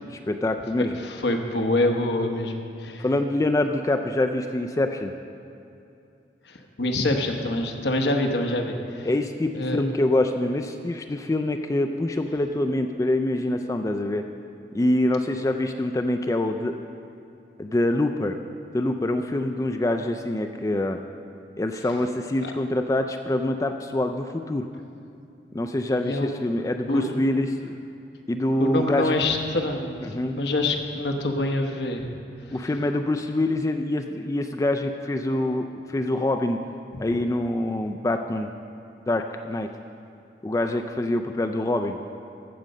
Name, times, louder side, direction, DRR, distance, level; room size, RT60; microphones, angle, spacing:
voice 1, 0.1-0.9 3.0-5.1 9.0-14.2 14.7-16.9 17.6-18.4 18.7-21.0 21.6-24.7 25.5-27.5 28.3-29.1 30.0-30.4 32.5-36.6 37.0-38.5 39.1-39.7 40.4-42.0, left 1 dB, 15° left, 6 dB, 0.3 m, -25 dB
voice 2, 0.8-3.0 6.4-9.1 9.5-9.8 22.4-22.5 26.0-26.3 26.9-27.1 28.6-30.0 30.3-32.1 32.5-32.6 36.9-37.0, left 1 dB, 70° left, 4 dB, 1.0 m, -26 dB
14.5 x 5.2 x 6.5 m, 2.6 s
head